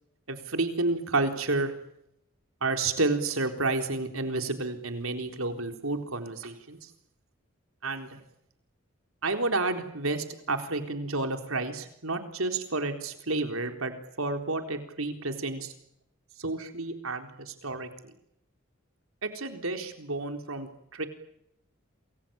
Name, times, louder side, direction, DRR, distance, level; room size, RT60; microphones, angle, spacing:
voice 1, 0.3-1.7 2.6-6.9 7.8-8.2 9.2-15.7 16.4-18.1 19.2-21.1, right 3 dB, 80° right, 6 dB, 3.9 m, -30 dB
28.0 x 22.0 x 8.9 m, 0.76 s
head